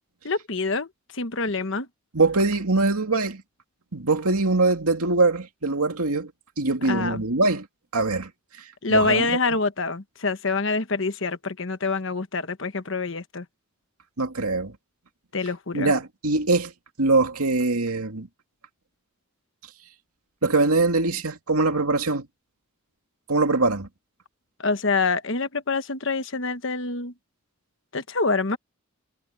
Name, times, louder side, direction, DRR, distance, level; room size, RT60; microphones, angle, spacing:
voice 1, 0.2-1.9 6.8-7.2 8.8-13.4 15.3-15.9 24.6-27.1 27.9-28.6, left 3 dB, 55° left, 1.2 m, -26 dB
voice 2, 2.1-3.4 3.9-6.3 6.6-7.7 7.9-8.3 8.6-9.3 14.2-14.8 15.7-16.7 17.0-18.3 20.4-22.3 23.3-23.9, right 3 dB, 85° right, 2.4 m, -23 dB
head